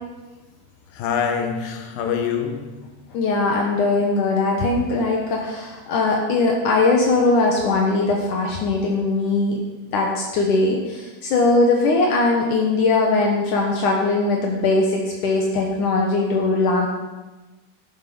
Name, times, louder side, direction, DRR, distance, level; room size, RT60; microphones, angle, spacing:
voice 1, 0.9-2.9, left 6 dB, 85° left, 3.0 m, -25 dB
voice 2, 3.1-9.6 9.9-16.9, left 3 dB, 70° left, 2.7 m, -20 dB
12.5 x 9.1 x 6.0 m
omnidirectional pair, 3.9 m